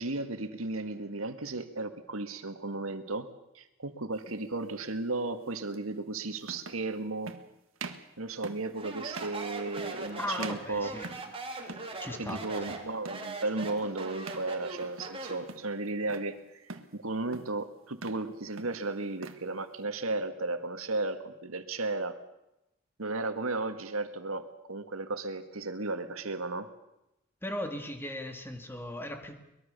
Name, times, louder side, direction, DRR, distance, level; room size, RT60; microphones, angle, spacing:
voice 1, 0.0-3.3 3.5-7.3 8.2-10.9 12.2-16.6 16.9-22.2 23.0-26.7, right 2 dB, 90° right, 8 dB, 1.9 m, -34 dB
sound 1, 4.2-4.4 5.7-5.8 6.4-6.9 7.2-7.5 7.8-8.1 8.4-8.7 9.1-9.4 9.8-10.1 10.4-11.4 11.7-12.0 12.2-12.5 13.0-13.3 13.6-13.9 14.2-14.5 14.8-15.2 15.5-16.3 16.7-17.0 17.3-17.6 17.9-18.3 18.6-19.4, right 4 dB, 70° right, 1.7 m, -44 dB
Speech, 8.7-15.5, right 3 dB, 25° right, 3.2 m, -40 dB
voice 2, 10.2-11.1 12.0-12.8 27.4-29.4, left 1 dB, 10° left, 5 dB, 2.3 m, -38 dB
23.5 x 21.0 x 6.8 m, 0.88 s
head